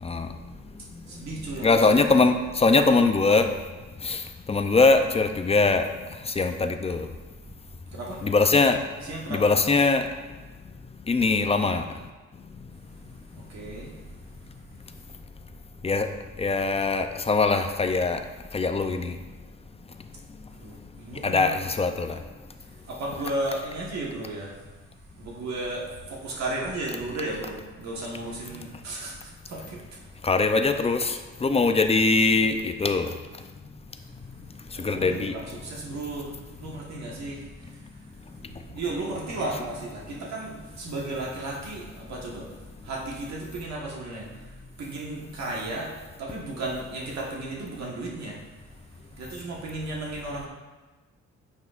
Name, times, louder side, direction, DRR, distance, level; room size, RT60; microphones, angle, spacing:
voice 1, 0.0-0.3 1.6-3.5 4.0-4.2 4.5-5.9 6.2-7.1 8.2-8.8 9.3-10.1 11.1-11.9 15.8-16.1 16.4-18.2 18.5-19.2 21.2-22.2 30.2-33.1 34.8-35.4, left 3 dB, 20° left, 7 dB, 0.5 m, -22 dB
voice 2, 1.1-2.1 5.0-5.3 7.9-8.2 9.0-9.5 13.5-13.9 20.6-21.7 22.9-24.5 25.2-29.8 34.7-36.3 36.6-37.4 38.7-42.5 42.8-44.3 44.8-45.9 46.2-48.4 49.2-50.5, right 2 dB, 65° right, -3 dB, 1.4 m, -34 dB
9.3 x 5.6 x 2.5 m, 1.3 s
cardioid pair, 90°, 30 cm